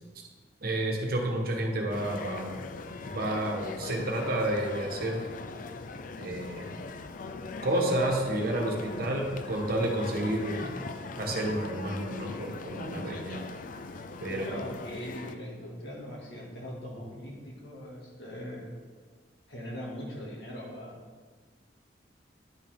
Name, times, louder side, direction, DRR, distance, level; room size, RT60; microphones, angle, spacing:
voice 1, 0.6-2.6 3.1-5.2 6.2-6.8 7.6-10.7 11.2-13.4 14.2-14.4, right 1 dB, 60° right, 1 dB, 1.3 m, -30 dB
sound 1, 1.9-15.3, left 3 dB, 50° left, 0.4 m, -40 dB
voice 2, 14.3-18.7 19.5-21.0, equal, 75° left, -3 dB, 2.1 m, -40 dB
10.0 x 5.5 x 3.6 m, 1.5 s
head